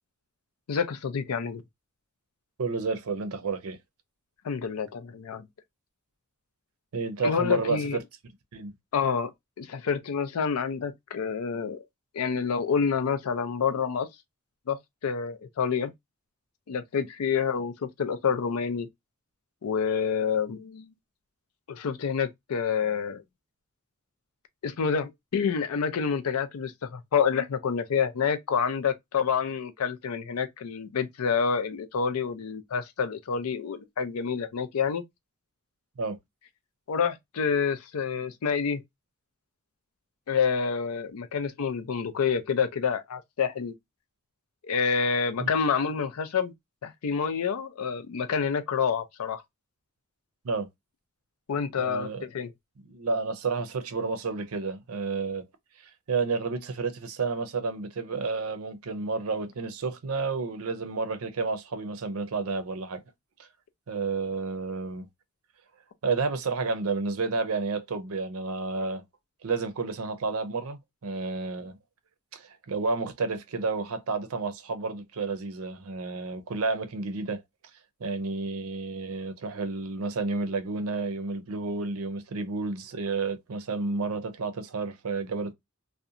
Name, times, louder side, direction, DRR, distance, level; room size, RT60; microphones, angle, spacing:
voice 1, 0.7-1.6 4.4-5.5 7.2-8.0 8.9-9.3 9.6-11.8 12.1-14.1 14.7-14.8 15.0-15.9 16.7-18.9 19.6-20.9 21.7-23.2 24.6-35.0 36.9-38.8 40.3-43.7 44.6-46.5 46.8-49.4 51.5-52.5, left 6 dB, 80° left, 0.5 m, -28 dB
voice 2, 2.6-3.8 6.9-7.8 8.5-8.7 36.0-36.2 45.4-45.5 50.4-50.7 51.8-52.3 52.9-55.4 56.1-63.0 63.9-65.1 66.0-69.0 69.4-71.8 72.3-77.4 78.0-85.5, right 4 dB, 75° right, 0.5 m, -31 dB
2.7 x 2.1 x 2.4 m
head